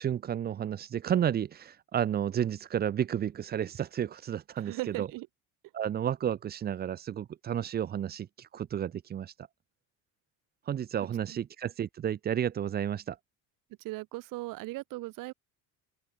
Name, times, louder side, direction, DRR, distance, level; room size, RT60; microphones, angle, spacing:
voice 1, 0.0-5.1 5.7-9.3 10.7-13.2, right 9 dB, 25° right, 0.6 m, -32 dB
voice 2, 4.6-5.3 11.0-11.4 13.8-15.3, right 20 dB, 65° right, 1.6 m, -38 dB
cardioid pair, 145°, 35 cm